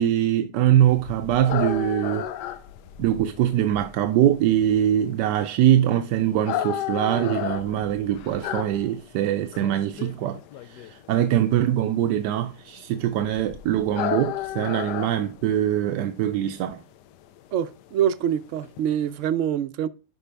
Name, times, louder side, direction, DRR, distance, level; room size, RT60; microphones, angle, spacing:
voice 1, 0.0-2.3 3.0-10.4 10.7-16.8, right 11 dB, 90° right, 1.3 m, -23 dB
sound 1, 0.8-19.3, left 10 dB, 90° left, 1.2 m, -34 dB
voice 2, 17.5-19.9, right 9 dB, 65° right, 0.7 m, -25 dB
11.0 x 4.7 x 3.3 m
omnidirectional pair, 1.8 m